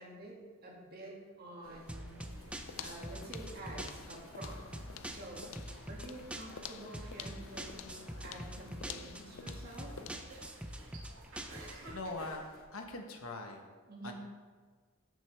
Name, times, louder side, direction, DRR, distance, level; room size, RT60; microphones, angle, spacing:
voice 1, 0.0-2.3 2.8-4.7 5.1-5.4 5.9-9.9 13.9-14.1, right 1 dB, 45° right, -3 dB, 2.1 m, -49 dB
sound 1, 1.6-12.6, right 1 dB, 75° right, 1.9 m, -55 dB
sound 2, 1.9-12.0, right 1 dB, 5° right, 0.5 m, -45 dB
sound 3, 2.2-10.4, left 7 dB, 70° left, 0.5 m, -50 dB
voice 2, 11.9-13.7 14.0-14.1, left 2 dB, 90° left, 4 dB, 1.2 m, -42 dB
13.0 x 6.6 x 3.4 m, 1.5 s
head